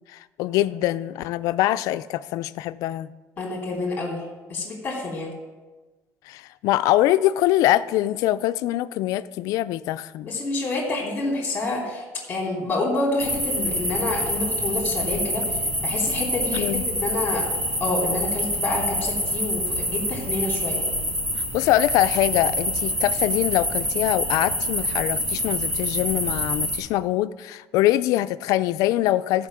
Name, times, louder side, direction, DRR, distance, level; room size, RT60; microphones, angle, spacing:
voice 1, 0.1-3.1 6.3-10.3 16.5-16.8 21.5-29.5, left 14 dB, 80° left, 13 dB, 0.4 m, -23 dB
voice 2, 3.4-4.2 4.5-5.3 10.2-17.4 17.8-20.8, left 2 dB, 25° left, -2 dB, 2.8 m, -28 dB
sound 1, 13.2-26.8, equal, 25° right, 3.2 m, -26 dB
14.5 x 4.9 x 7.4 m, 1.3 s
cardioid pair, 160°, 6 cm